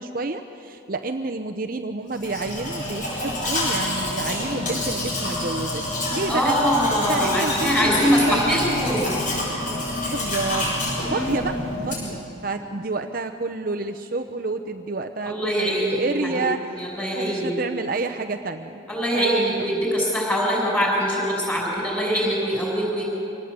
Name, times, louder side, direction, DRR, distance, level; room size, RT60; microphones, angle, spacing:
voice 1, 0.0-6.6 7.1-8.8 10.1-16.7 17.1-18.9 19.1-19.7, right 3 dB, 45° right, 5 dB, 0.8 m, -29 dB
Domestic sounds home sounds, 2.1-12.2, left 1 dB, 40° left, 7.9 m, -27 dB
voice 2, 6.3-9.2 11.1-11.4 15.3-16.0 16.3-16.4 16.7-17.6 18.9-23.0, equal, 10° left, -2 dB, 6.2 m, -23 dB
25.0 x 19.0 x 8.3 m, 2.9 s
head